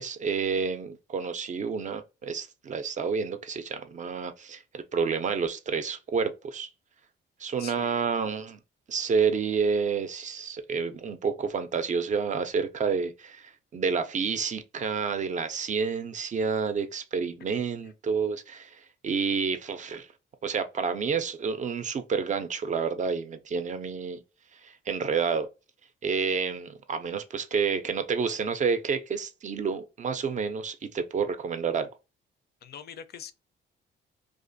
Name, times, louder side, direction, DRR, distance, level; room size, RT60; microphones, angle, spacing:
voice 1, 0.0-6.7 7.4-8.6 8.9-20.1 20.4-24.2 24.5-25.5 26.0-31.9, right 5 dB, 40° right, 0.4 m, -29 dB
voice 2, 7.6-8.1 17.8-17.9 32.6-33.3, left 8 dB, 55° left, 0.4 m, -43 dB
2.4 x 2.4 x 2.5 m
cardioid pair, 90°, 20 cm